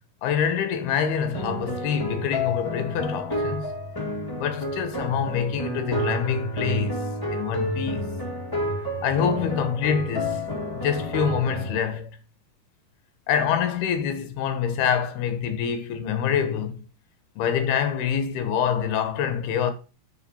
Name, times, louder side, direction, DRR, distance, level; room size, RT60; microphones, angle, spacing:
voice 1, 0.2-3.7 4.4-7.0 7.3-8.0 9.0-10.5 10.8-12.2 13.3-16.8 17.4-19.7, left 7 dB, 75° left, 3.0 m, -26 dB
sound 1, 1.3-11.8, equal, 15° left, 0.6 m, -30 dB
8.2 x 4.5 x 6.8 m
omnidirectional pair, 4.6 m